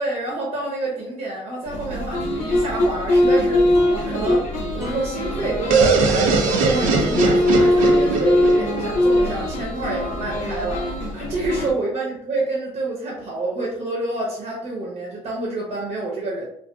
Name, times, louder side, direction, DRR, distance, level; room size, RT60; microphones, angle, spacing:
voice 1, 0.0-16.5, right 2 dB, 65° right, -3 dB, 0.8 m, -28 dB
sound 1, 1.6-11.7, left 1 dB, 80° left, 0.6 m, -21 dB
sound 2, 3.2-6.5 7.0-7.1, right 1 dB, 20° right, 0.8 m, -37 dB
sound 3, 5.7-9.5, right 4 dB, 85° right, 0.4 m, -20 dB
2.6 x 2.3 x 2.3 m, 0.72 s
supercardioid pair, 75°, 13 cm